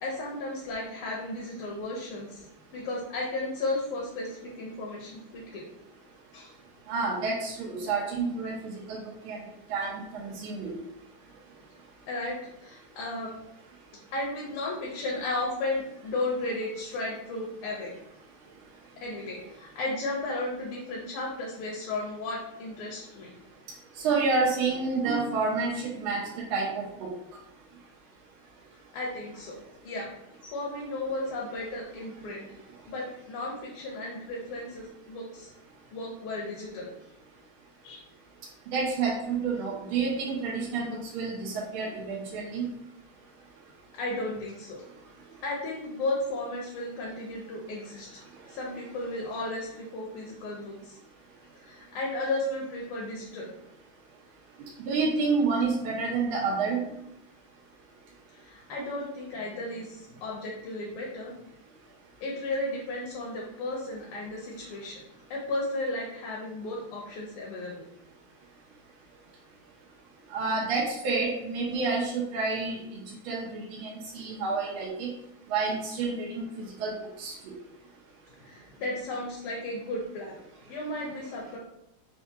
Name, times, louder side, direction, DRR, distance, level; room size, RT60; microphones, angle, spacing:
voice 1, 0.0-2.4 2.7-5.6 6.3-6.5 12.1-13.3 14.1-17.9 19.0-23.3 28.9-29.6 29.8-30.2 30.4-32.5 32.8-35.5 35.9-36.9 37.8-38.0 43.9-44.8 45.4-48.2 48.5-51.0 51.6-53.5 58.3-61.3 62.2-65.0 65.3-67.9 78.4-80.4 80.7-81.6, left 2 dB, 80° left, -3 dB, 1.6 m, -34 dB
voice 2, 6.9-9.0 9.2-9.4 9.7-10.7 24.0-27.1 38.7-42.7 54.8-56.8 70.3-72.8 73.2-75.1 75.5-76.5 76.8-76.9 77.2-77.3, right 4 dB, 80° right, -2 dB, 1.4 m, -29 dB
4.4 x 2.3 x 2.7 m, 0.80 s
omnidirectional pair, 2.4 m